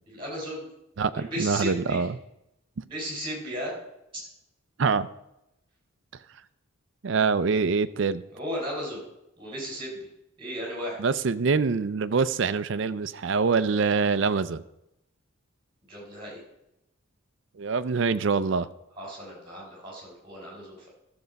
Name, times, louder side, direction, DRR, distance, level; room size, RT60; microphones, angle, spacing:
voice 1, 0.1-0.7 1.1-2.0 2.8-3.8 4.1-4.3 8.3-9.0 9.4-10.1 10.4-11.0 15.9-16.4 19.0-20.9, equal, 25° right, -1 dB, 3.8 m, -35 dB
voice 2, 1.0-2.2 2.8-2.9 4.8-5.1 7.0-8.2 11.0-14.6 17.6-18.7, right 5 dB, 55° right, 14 dB, 0.4 m, -25 dB
13.0 x 6.9 x 5.2 m, 0.85 s
head